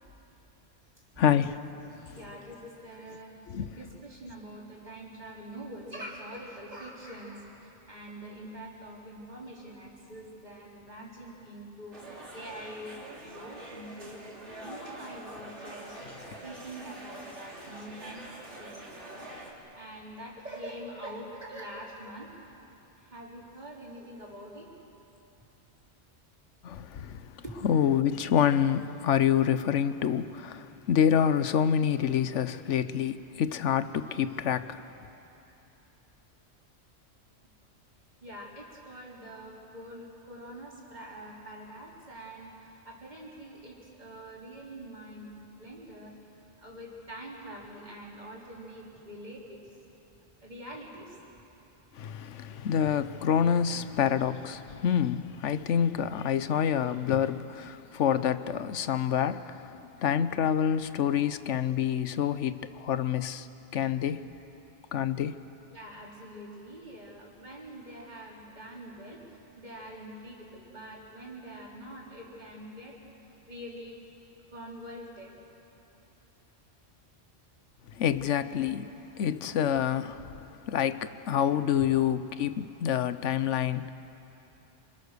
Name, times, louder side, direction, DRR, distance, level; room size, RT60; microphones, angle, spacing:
voice 1, 1.2-1.6 3.5-3.7 26.6-27.2 27.6-34.8 52.0-63.5 63.7-64.3 64.9-65.4 78.0-78.9 79.2-80.4 80.7-83.9, left 9 dB, 85° left, 1.1 m, -27 dB
voice 2, 2.1-3.4 3.7-12.1 12.3-13.0 13.2-16.0 16.4-22.3 23.0-24.7 27.4-27.6 38.2-46.2 46.6-49.6 50.4-51.2 65.7-73.0 73.5-74.0 74.5-75.4, right 1 dB, 35° right, 4.1 m, -45 dB
sound 1, 11.9-19.5, right 1 dB, 70° right, 3.4 m, -45 dB
27.0 x 26.5 x 6.7 m
omnidirectional pair, 1.2 m